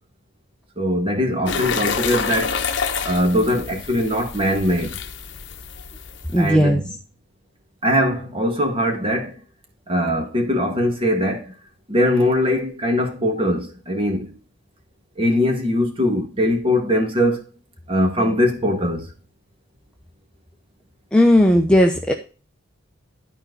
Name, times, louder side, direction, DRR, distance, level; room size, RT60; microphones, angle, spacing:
voice 1, 0.8-2.6 3.0-5.0 6.4-6.8 7.8-9.3 9.9-11.5 11.9-14.3 15.2-17.4 17.9-19.1, left 1 dB, 25° right, 1.7 m, -21 dB
sound 1, 1.5-6.5, left 5 dB, 60° left, 1.0 m, -28 dB
voice 2, 6.3-6.8 21.1-22.1, left 1 dB, 5° left, 0.7 m, -15 dB
12.0 x 4.5 x 3.9 m
head